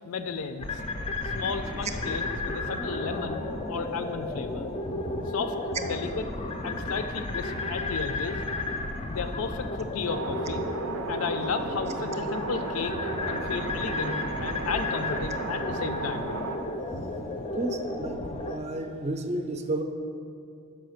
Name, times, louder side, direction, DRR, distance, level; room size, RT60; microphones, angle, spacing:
voice 1, 0.1-0.8 1.3-4.7 5.3-5.6 5.8-6.3 6.6-8.4 9.1-10.6 11.1-13.0 13.3-16.4, left 5 dB, 85° left, 8 dB, 0.4 m, -33 dB
sound 1, 0.6-18.6, left 2 dB, 25° left, 0.4 m, -33 dB
sound 2, 10.0-16.6, right 4 dB, 80° right, 0.5 m, -35 dB
voice 2, 17.5-18.2 18.5-19.8, right 2 dB, 30° right, 6 dB, 0.4 m, -31 dB
5.8 x 4.9 x 6.4 m, 2.5 s
head